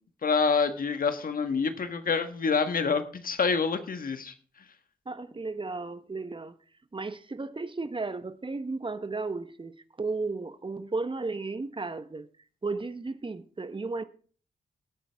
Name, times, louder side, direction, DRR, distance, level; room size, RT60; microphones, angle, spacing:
voice 1, 0.2-4.3, left 5 dB, 60° left, 1.5 m, -27 dB
voice 2, 5.1-6.5 6.9-9.7 10.0-12.3 12.6-14.0, right 3 dB, 30° right, 1.0 m, -34 dB
16.5 x 8.2 x 3.5 m
supercardioid pair, 50°, 17 cm